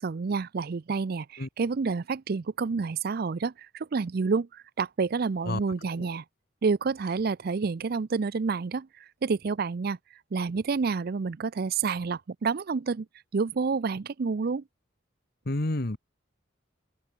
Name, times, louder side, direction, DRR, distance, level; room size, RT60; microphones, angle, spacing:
voice 1, 0.0-6.2 6.6-8.9 9.2-10.0 10.3-13.1 13.3-14.6, right 4 dB, 50° right, 0.4 m, -29 dB
voice 2, 15.5-16.0, left 1 dB, 50° left, 1.5 m, -29 dB
open air
head